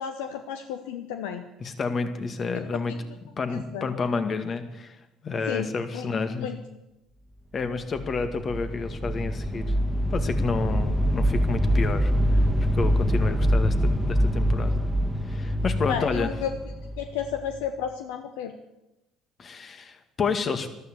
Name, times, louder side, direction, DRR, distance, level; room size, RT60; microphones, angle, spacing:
voice 1, 0.0-1.4 2.9-3.0 3.5-3.9 5.5-5.7 5.9-6.1 6.4-6.6 15.9-16.5 17.0-18.5, left 8 dB, 75° left, 7 dB, 1.0 m, -32 dB
voice 2, 1.6-2.9 3.4-5.0 5.2-6.5 7.5-9.7 10.1-12.4 12.7-14.8 15.3-16.3 19.4-20.7, left 4 dB, 40° left, 8 dB, 2.0 m, -30 dB
sound 1, 7.8-17.6, equal, 10° right, 1.7 m, -25 dB
13.5 x 13.0 x 8.3 m, 0.94 s
hypercardioid pair, 55°, 0 cm